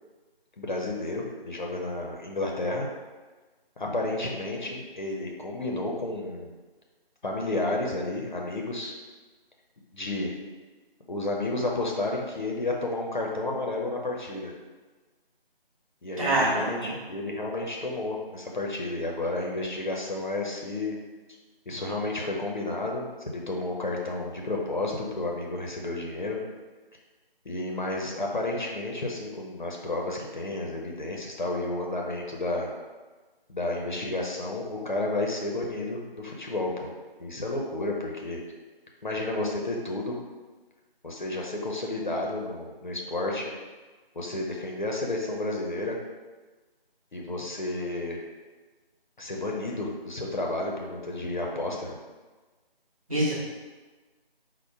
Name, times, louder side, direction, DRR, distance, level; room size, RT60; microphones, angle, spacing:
voice 1, 0.6-2.9 3.8-6.5 7.2-8.9 9.9-10.3 11.1-14.5 16.0-20.9 21.7-26.4 27.4-32.7 33.5-36.9 37.2-38.4 39.0-40.2 41.0-43.5 44.1-46.0 47.1-48.2 49.2-51.9, left 2 dB, 50° left, -1 dB, 0.7 m, -31 dB
voice 2, 16.2-16.9 53.1-53.3, right 1 dB, 35° right, -7 dB, 1.1 m, -25 dB
4.5 x 2.1 x 4.4 m, 1.3 s
figure-of-eight pair, 165°, 30 cm